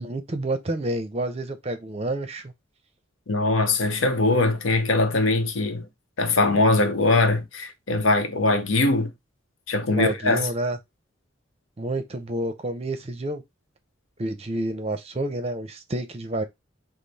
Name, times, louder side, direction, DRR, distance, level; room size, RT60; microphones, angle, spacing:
voice 1, 0.0-2.5 9.9-10.8 11.8-13.4 14.2-16.4, right 1 dB, 30° right, 0.6 m, -29 dB
voice 2, 3.3-5.9 6.2-9.1 9.7-10.5, left 2 dB, 80° left, 0.7 m, -21 dB
5.1 x 2.0 x 4.0 m
head